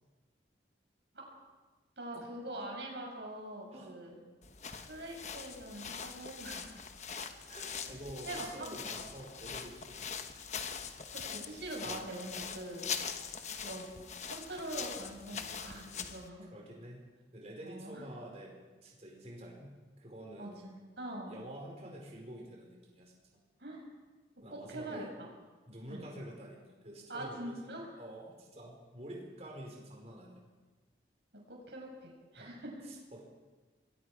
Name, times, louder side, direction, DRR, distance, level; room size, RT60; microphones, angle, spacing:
voice 1, 2.0-4.2 4.8-6.7 8.3-8.7 11.1-12.9 13.6-13.9 14.2-16.5 17.6-18.1 20.4-21.3 23.6-23.8 24.5-25.3 25.9-26.1 27.1-27.9 31.5-32.8, right 1 dB, 80° right, 0 dB, 6.1 m, -43 dB
sound 1, 4.4-16.3, left 6 dB, 40° left, 1.2 m, -42 dB
voice 2, 7.0-10.0 11.8-12.1 15.3-16.0 16.5-17.0 17.3-18.5 18.8-20.6 21.3-23.1 24.4-25.1 25.7-27.6 28.0-30.4 32.4-32.5 32.8-33.2, right 1 dB, 35° right, -1 dB, 4.9 m, -48 dB
26.5 x 21.5 x 5.0 m, 1.3 s
head